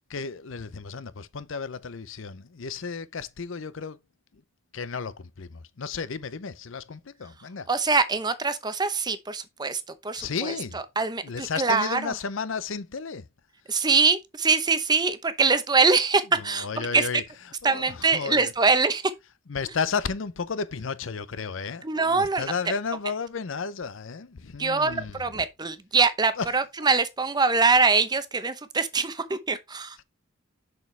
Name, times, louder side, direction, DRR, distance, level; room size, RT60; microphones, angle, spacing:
voice 1, 0.1-4.0 4.3-4.4 4.7-7.7 10.1-10.8 11.2-13.3 16.4-17.2 17.6-18.5 19.5-25.4 26.4-26.5, left 5 dB, 70° left, 0.6 m, -33 dB
voice 2, 7.7-12.1 13.7-17.1 17.6-19.1 21.8-22.4 24.6-30.0, right 4 dB, 20° right, 0.8 m, -24 dB
6.7 x 6.2 x 3.3 m
head